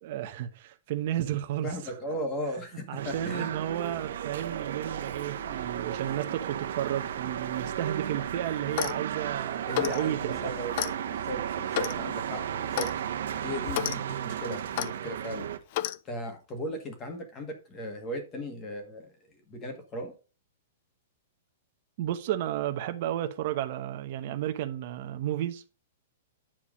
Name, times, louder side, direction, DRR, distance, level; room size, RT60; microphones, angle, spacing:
voice 1, 0.0-1.7 2.9-10.5 22.0-25.6, right 12 dB, 40° right, 0.9 m, -32 dB
voice 2, 1.6-3.5 6.1-6.2 9.7-12.9 13.4-15.5 16.0-20.1, equal, 15° left, 1.7 m, -37 dB
sound 1, 3.0-15.6, right 9 dB, 65° right, 1.0 m, -34 dB
Clock, 8.6-9.0 9.7-10.0 10.7-10.9 11.7-12.0 12.7-12.9 13.7-14.0 14.7-14.9 15.7-16.0, left 13 dB, 35° left, 0.4 m, -30 dB
8.7 x 4.7 x 5.0 m
hypercardioid pair, 175°, 0 cm